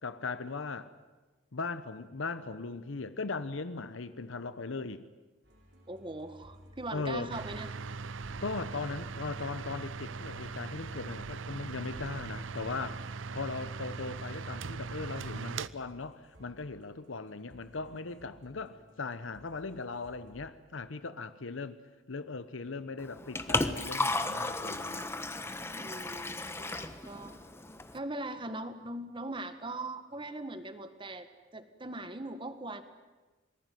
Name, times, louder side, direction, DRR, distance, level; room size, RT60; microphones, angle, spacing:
voice 1, 0.0-0.9 1.5-5.0 6.9-7.3 8.4-13.0 13.3-21.8 22.1-25.1, left 4 dB, 85° left, 0.9 m, -38 dB
sound 1, 5.4-20.5, equal, 60° right, 5.0 m, -60 dB
voice 2, 5.9-7.7 25.7-27.4 27.9-31.3 31.5-32.8, right 2 dB, 25° right, 1.7 m, -40 dB
sound 2, 7.3-15.7, right 4 dB, 85° right, 0.7 m, -40 dB
Liquid, 23.0-28.0, left 2 dB, 15° left, 1.1 m, -34 dB
27.0 x 19.5 x 9.3 m
head